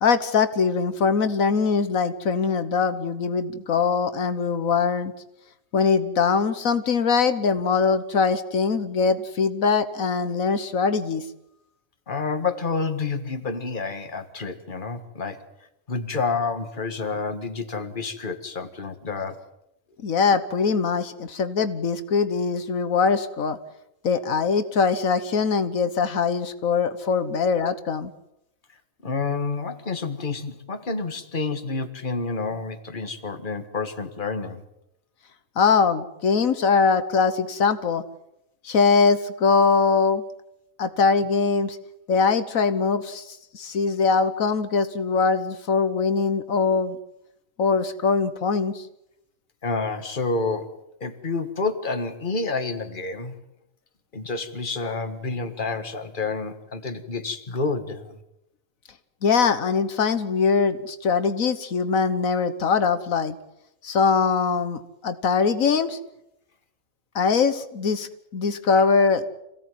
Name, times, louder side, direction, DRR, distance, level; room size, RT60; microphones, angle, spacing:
voice 1, 0.0-5.1 5.7-11.3 20.0-23.6 24.0-28.1 35.6-38.0 38.6-40.2 40.8-41.8 42.1-47.0 47.6-48.9 59.2-63.4 63.8-66.0 67.1-69.3, left 5 dB, 80° left, 11 dB, 1.6 m, -22 dB
voice 2, 12.1-15.4 15.9-19.4 29.0-34.6 49.6-53.4 54.1-58.2, left 4 dB, 40° left, 8 dB, 1.9 m, -29 dB
27.5 x 17.0 x 9.3 m, 0.86 s
omnidirectional pair, 1.4 m